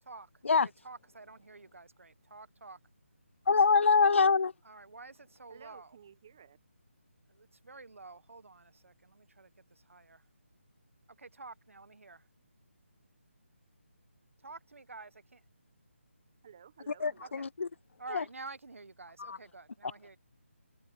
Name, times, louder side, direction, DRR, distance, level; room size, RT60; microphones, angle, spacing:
voice 1, 0.0-2.8 4.6-6.0 7.3-10.3 11.2-12.3 14.4-15.4 17.2-17.4 18.0-20.2, right 3 dB, 75° right, 1.4 m, -49 dB
voice 2, 3.5-4.5 17.0-17.7 18.1-18.2 19.3-19.4, left 4 dB, 65° left, 0.4 m, -24 dB
voice 3, 5.5-6.6 16.4-17.4, right 8 dB, 20° right, 1.0 m, -55 dB
hypercardioid pair, 175°, 7 cm